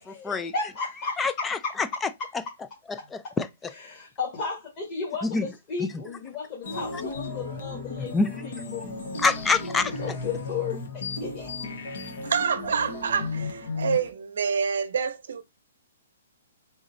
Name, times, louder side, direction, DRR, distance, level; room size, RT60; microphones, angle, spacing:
voice 1, 0.0-1.7 3.9-8.9 10.0-11.5, left 5 dB, 30° left, 1.6 m, -34 dB
voice 2, 1.2-2.1 2.9-3.7 5.2-5.5 5.8-6.0 6.9-7.0 8.1-8.4 9.2-9.9, left 4 dB, 10° left, 0.4 m, -26 dB
sound 1, 6.6-14.1, left 3 dB, 65° left, 1.3 m, -35 dB
voice 3, 12.2-15.4, right 6 dB, 70° right, 0.7 m, -27 dB
3.7 x 3.0 x 4.0 m
hypercardioid pair, 150°, 0 cm